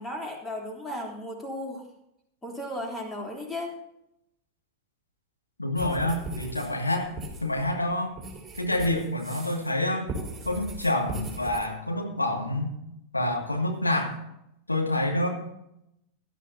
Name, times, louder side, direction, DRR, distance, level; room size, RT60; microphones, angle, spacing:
voice 1, 0.0-1.8 2.4-3.8, left 1 dB, 10° left, 0 dB, 3.5 m, -35 dB
voice 2, 5.6-7.1 7.4-8.2 8.6-10.1 10.5-12.7 13.1-14.2 14.7-15.3, left 1 dB, 85° left, 1 dB, 2.3 m, -27 dB
sound 1, 5.8-9.8 10.1-11.7, right 2 dB, 15° right, 3.9 m, -39 dB
17.0 x 11.5 x 2.8 m, 0.80 s
figure-of-eight pair, 90°, 0 cm